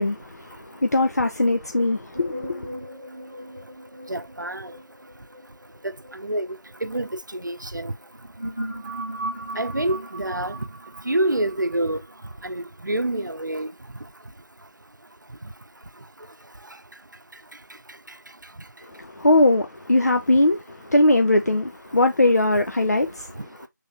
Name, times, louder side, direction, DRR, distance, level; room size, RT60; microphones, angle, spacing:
voice 1, 0.0-2.7 18.9-23.4, left 2 dB, 55° left, 0.6 m, -21 dB
sound 1, 2.1-7.4 8.0-13.0, right 1 dB, 20° right, 0.8 m, -38 dB
voice 2, 4.1-4.8 5.8-7.9 9.6-10.6 11.0-12.0 12.4-13.7, right 1 dB, 75° right, 0.7 m, -27 dB
5.5 x 3.5 x 2.8 m
figure-of-eight pair, 170°, 10 cm